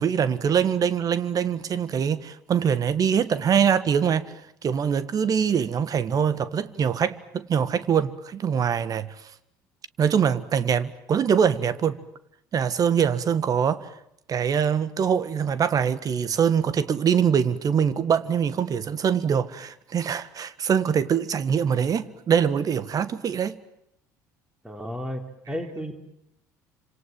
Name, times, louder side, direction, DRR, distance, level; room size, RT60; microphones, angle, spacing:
voice 1, 0.0-4.2 4.6-9.1 10.0-12.0 12.5-13.9 14.3-23.6, right 7 dB, 40° right, 1.7 m, -23 dB
voice 2, 24.6-25.2 25.5-25.9, equal, 10° right, 3.6 m, -32 dB
28.0 x 26.5 x 7.7 m
figure-of-eight pair, 60°, 9 cm